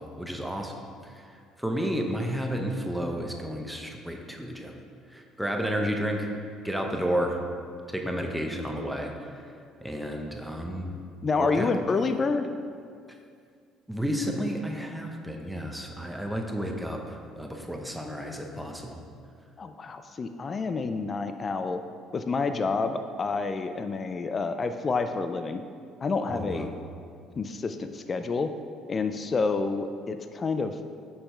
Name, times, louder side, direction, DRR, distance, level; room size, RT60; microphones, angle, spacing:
voice 1, 0.0-4.7 5.1-6.3 6.6-7.4 7.9-9.5 9.8-11.0 11.4-11.8 13.1-13.2 13.9-19.0 26.3-26.7, equal, 5° right, 2 dB, 0.7 m, -32 dB
voice 2, 11.2-12.5 19.6-21.8 22.1-25.6 26.0-26.7 27.4-28.5 28.9-30.7, left 4 dB, 35° left, 8 dB, 0.4 m, -28 dB
6.8 x 5.5 x 4.4 m, 2.3 s
supercardioid pair, 90°, 0 cm